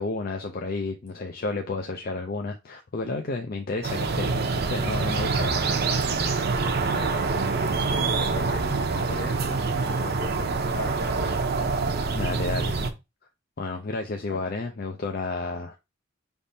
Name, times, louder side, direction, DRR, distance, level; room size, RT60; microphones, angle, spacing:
voice 1, 0.0-5.8 12.1-12.8 13.6-15.8, left 3 dB, 50° left, 0.5 m, -31 dB
sound 1, 3.8-12.9, right 4 dB, 50° right, 0.6 m, -26 dB
voice 2, 6.8-11.3 14.3-14.4, left 3 dB, 65° left, 0.9 m, -39 dB
5.1 x 3.5 x 2.7 m
head